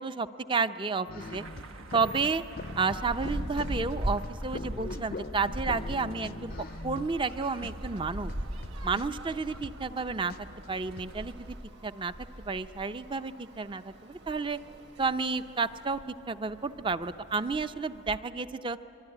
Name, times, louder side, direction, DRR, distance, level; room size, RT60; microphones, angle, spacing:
voice 1, 0.0-1.4 1.9-2.4 2.8-6.5 6.8-8.3 8.8-10.3 10.7-11.5 11.8-14.6 15.0-18.8, right 4 dB, 25° right, 11 dB, 0.5 m, -31 dB
sound 1, 1.1-7.3 7.6-7.7 8.0-10.0 10.3-10.4 10.6-11.1, left 3 dB, 45° left, 0.5 m, -42 dB
sound 2, 1.2-11.6, right 2 dB, 80° right, 1.2 m, -47 dB
sound 3, 2.6-18.2, equal, 55° right, 2.3 m, -41 dB
25.5 x 23.0 x 9.9 m, 2.8 s
head